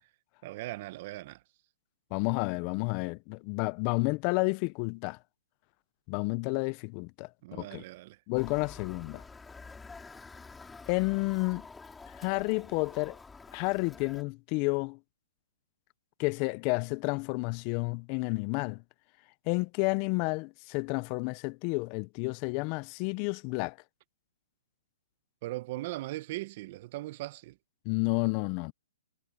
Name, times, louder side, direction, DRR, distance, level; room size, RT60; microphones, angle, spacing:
voice 1, 0.4-1.4 7.4-8.2 25.4-27.6, right 18 dB, 40° right, 1.1 m, -39 dB
voice 2, 2.1-5.2 6.1-7.8 8.3-9.2 10.9-11.6 12.1-13.2 13.5-15.0 16.2-18.8 19.5-23.8 27.9-28.7, left 27 dB, 30° left, 0.6 m, -31 dB
Motor vehicle (road) / Siren, 8.3-14.2, left 4 dB, 5° left, 6.1 m, -49 dB
hypercardioid pair, 145°, 0 cm